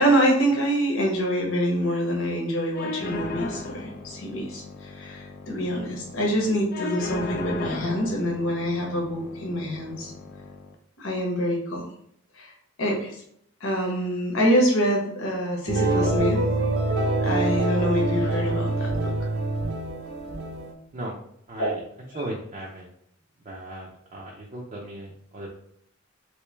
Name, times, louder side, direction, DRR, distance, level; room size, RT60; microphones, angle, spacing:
voice 1, 0.0-10.1 11.0-11.8 12.4-12.5 12.8-13.2 13.6-16.4 17.2-19.1 21.6-21.7 22.1-22.3, equal, 70° left, -1 dB, 1.0 m, -25 dB
sound 1, 2.7-10.7, left 2 dB, 50° left, 0.4 m, -37 dB
sound 2, 15.7-20.7, right 2 dB, 75° right, 0.7 m, -25 dB
voice 2, 21.5-21.8 22.1-22.9 23.4-25.5, right 1 dB, 35° right, -4 dB, 0.5 m, -36 dB
3.1 x 3.0 x 3.3 m, 0.70 s
head